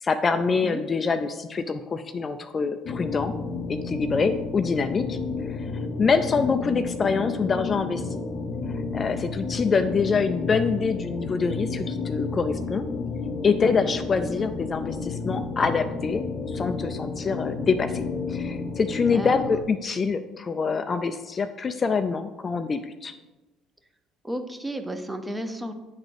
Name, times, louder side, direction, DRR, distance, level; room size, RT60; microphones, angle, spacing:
voice 1, 0.0-3.3 3.7-5.2 5.5-8.2 8.7-12.9 13.4-18.0 18.3-23.1, left 5 dB, 30° left, 8 dB, 0.4 m, -25 dB
sound 1, 2.8-19.6, left 4 dB, 45° left, 0.8 m, -31 dB
voice 2, 24.2-25.7, right 1 dB, 10° right, 7 dB, 0.7 m, -32 dB
8.7 x 4.0 x 4.9 m, 1.1 s
cardioid pair, 105°, 0 cm